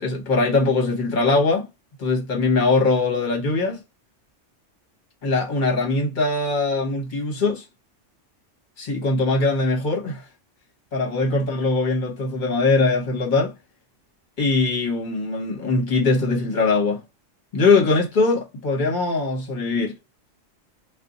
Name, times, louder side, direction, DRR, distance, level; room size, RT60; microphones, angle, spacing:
voice 1, 0.0-1.7 2.0-3.8 5.2-7.6 8.8-10.2 10.9-13.5 14.4-17.0 17.5-19.9, left 3 dB, 40° left, 1.2 m, -21 dB
2.6 x 2.4 x 3.8 m
omnidirectional pair, 1.3 m